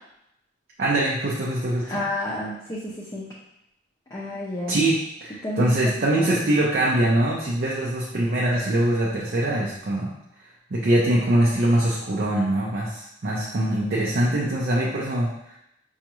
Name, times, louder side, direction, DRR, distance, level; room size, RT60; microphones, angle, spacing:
voice 1, 0.8-2.0 4.7-10.1 10.7-15.6, right 1 dB, 55° right, -4 dB, 0.6 m, -23 dB
voice 2, 1.9-3.2 4.1-4.8 5.4-6.4, left 1 dB, 20° left, -7 dB, 0.5 m, -31 dB
5.0 x 2.3 x 3.0 m, 0.80 s
head